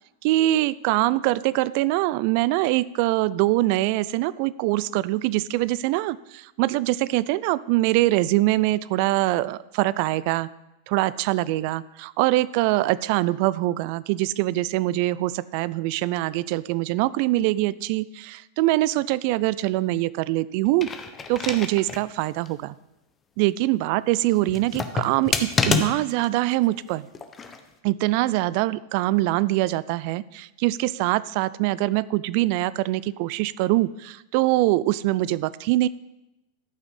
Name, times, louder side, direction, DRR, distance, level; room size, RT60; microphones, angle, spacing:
voice 1, 0.2-10.5 10.9-20.9 21.3-22.8 23.4-27.1 27.8-35.9, right 17 dB, 50° right, 19 dB, 0.4 m, -23 dB
sound 1, 20.7-22.1 22.5-22.6 24.5-26.3 27.1-27.6, left 5 dB, 25° left, 1.1 m, -27 dB
13.0 x 5.8 x 5.5 m, 0.94 s
figure-of-eight pair, 95°, 0 cm